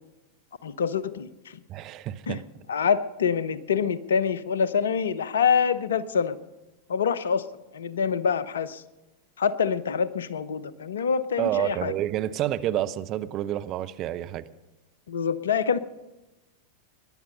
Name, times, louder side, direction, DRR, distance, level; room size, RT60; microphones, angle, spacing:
voice 1, 0.6-1.6 2.3-2.4 2.7-6.4 6.9-7.5 7.7-8.8 9.4-11.9 15.1-15.8, left 6 dB, 65° left, 17 dB, 0.8 m, -26 dB
voice 2, 1.7-2.4 11.4-14.4, right 12 dB, 35° right, 10 dB, 0.7 m, -29 dB
21.0 x 11.0 x 5.5 m, 1.0 s
figure-of-eight pair, 90°, 0 cm